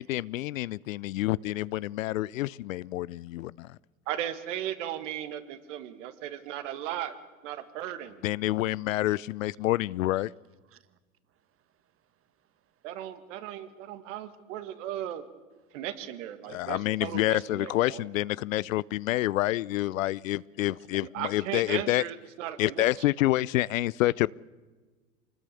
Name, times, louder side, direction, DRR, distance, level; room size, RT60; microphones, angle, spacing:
voice 1, 0.0-3.5 8.2-10.3 16.5-22.0 22.6-24.3, left 16 dB, 75° left, 0.6 m, -28 dB
voice 2, 4.1-7.1 7.4-8.2 12.8-15.3 15.7-18.1 21.0-22.8, right 11 dB, 65° right, 2.2 m, -36 dB
voice 3, 10.7-11.0 11.3-13.2 15.6-15.8, right 11 dB, 35° right, 1.6 m, -67 dB
25.5 x 20.0 x 7.0 m
hypercardioid pair, 90°, 40 cm